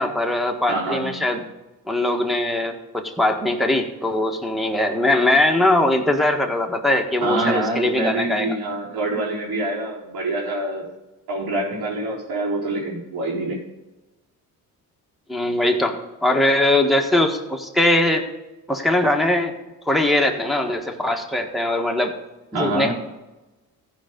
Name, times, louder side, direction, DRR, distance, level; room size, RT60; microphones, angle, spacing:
voice 1, 0.0-1.4 1.9-8.5 15.3-18.2 18.7-19.6 19.8-22.1 22.5-22.9, left 1 dB, ahead, 1 dB, 1.5 m, -21 dB
voice 2, 0.7-1.1 7.2-10.9 11.3-13.6 22.5-22.9, right 2 dB, 80° right, -4 dB, 4.2 m, -25 dB
15.0 x 5.2 x 5.2 m, 1.1 s
cardioid pair, 80°, 37 cm